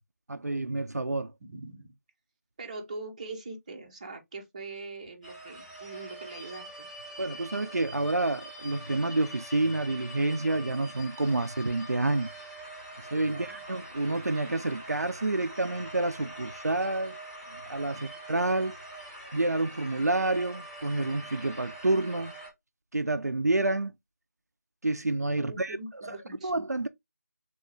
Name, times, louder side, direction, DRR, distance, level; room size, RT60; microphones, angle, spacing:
voice 1, 0.3-1.3 7.2-12.3 13.1-17.2 17.7-18.8 19.3-22.4 22.9-23.9 24.8-25.8 26.4-26.9, right 2 dB, 75° right, 0.5 m, -28 dB
voice 2, 1.4-1.9 2.6-6.9 13.1-13.6 25.4-26.7, right 3 dB, 25° right, 0.8 m, -42 dB
sound 1, 5.2-22.5, right 1 dB, 5° left, 2.0 m, -44 dB
3.7 x 3.6 x 3.3 m
figure-of-eight pair, 160°, 9 cm